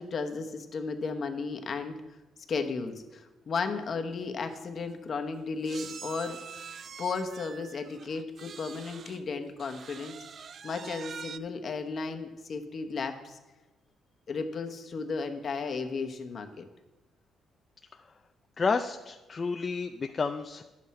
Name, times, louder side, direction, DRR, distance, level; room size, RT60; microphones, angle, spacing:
voice 1, 0.0-2.0 2.5-6.7 7.0-10.2 10.6-13.4 14.3-16.7, left 4 dB, 50° left, 5 dB, 1.1 m, -34 dB
sound 1, 4.2-4.3 4.5-4.7 5.7-9.2 9.6-11.4, right 7 dB, 55° right, 0.3 m, -45 dB
voice 2, 18.6-20.6, left 4 dB, 35° left, 5 dB, 0.4 m, -30 dB
10.5 x 7.6 x 4.3 m, 1.1 s
cardioid pair, 90°, 0 cm